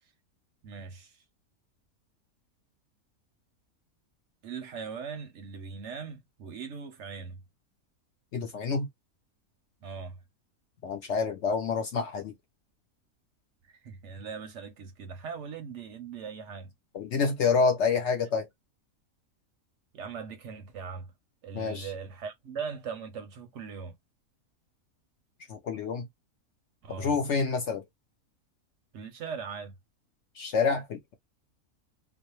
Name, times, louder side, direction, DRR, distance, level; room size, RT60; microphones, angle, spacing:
voice 1, 0.6-1.2 4.4-7.4 9.8-10.2 13.6-16.7 19.9-21.1 21.4-24.0 26.8-27.2 28.9-29.7, right 6 dB, 65° right, 0.8 m, -40 dB
voice 2, 8.3-8.9 10.8-12.3 16.9-18.5 21.5-21.9 25.5-26.1 26.9-27.8 30.4-31.1, left 5 dB, 65° left, 0.7 m, -28 dB
2.5 x 2.0 x 2.8 m
omnidirectional pair, 1.5 m